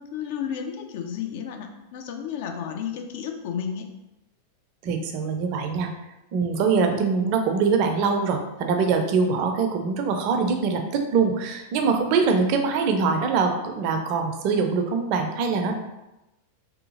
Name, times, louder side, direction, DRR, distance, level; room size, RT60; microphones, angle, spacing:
voice 1, 0.0-3.8, left 8 dB, 50° left, 4 dB, 0.3 m, -32 dB
voice 2, 4.8-5.9 6.3-15.8, right 5 dB, 45° right, 4 dB, 0.4 m, -23 dB
2.7 x 2.4 x 2.7 m, 0.98 s
figure-of-eight pair, 90°, 0 cm